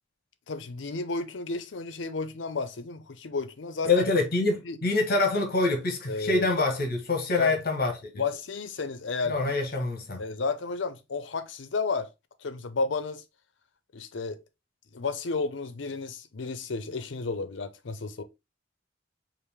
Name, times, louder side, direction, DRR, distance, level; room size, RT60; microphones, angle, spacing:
voice 1, 0.5-4.0 4.6-4.8 6.1-6.5 7.4-7.5 8.2-9.4 10.2-12.1 12.4-13.2 13.9-14.4 14.9-18.2, left 4 dB, 70° left, 0.6 m, -32 dB
voice 2, 3.8-8.2 9.3-10.2, left 3 dB, 50° left, 1.1 m, -26 dB
4.9 x 2.6 x 3.4 m
head